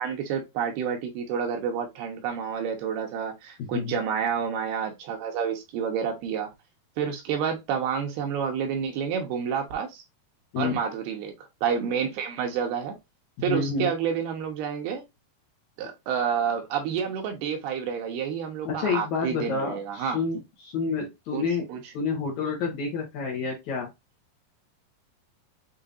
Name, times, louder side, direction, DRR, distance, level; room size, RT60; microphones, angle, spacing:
voice 1, 0.0-6.5 7.0-10.0 10.6-11.3 11.6-13.0 13.4-15.0 15.8-20.2 21.3-21.9, right 7 dB, 85° right, 3.0 m, -29 dB
voice 2, 13.5-13.9 18.7-21.7 21.9-23.9, left 5 dB, 65° left, 2.0 m, -29 dB
7.1 x 2.8 x 2.6 m
omnidirectional pair, 4.5 m